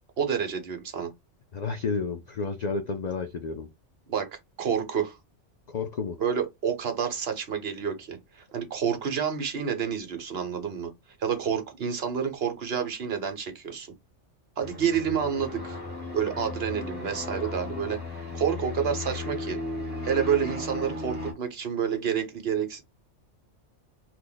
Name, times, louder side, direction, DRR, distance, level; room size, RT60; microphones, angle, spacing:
voice 1, 0.2-1.1 4.1-5.2 6.2-10.9 11.2-13.9 14.6-15.8 16.1-19.6 20.0-22.8, right 7 dB, 60° right, 1.1 m, -29 dB
voice 2, 1.5-3.7 5.7-6.2, left 4 dB, 70° left, 0.4 m, -31 dB
sound 1, 14.6-21.3, left 2 dB, 10° right, 1.4 m, -35 dB
2.9 x 2.5 x 3.8 m
omnidirectional pair, 1.2 m